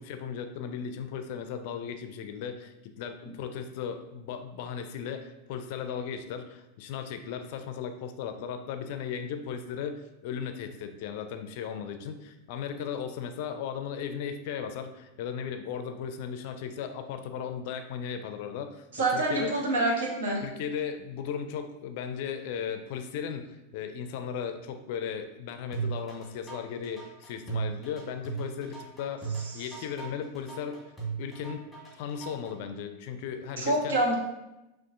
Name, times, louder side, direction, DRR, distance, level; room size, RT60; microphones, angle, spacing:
voice 1, 0.0-19.5 20.4-30.8 31.2-31.7 32.0-34.0, left 7 dB, 55° left, 7 dB, 0.4 m, -36 dB
voice 2, 18.9-20.4 33.6-34.2, right 2 dB, 65° right, 0 dB, 0.9 m, -26 dB
sound 1, 25.7-32.5, right 5 dB, ahead, 1.5 m, -36 dB
6.0 x 2.4 x 2.5 m, 0.96 s
figure-of-eight pair, 90°, 0 cm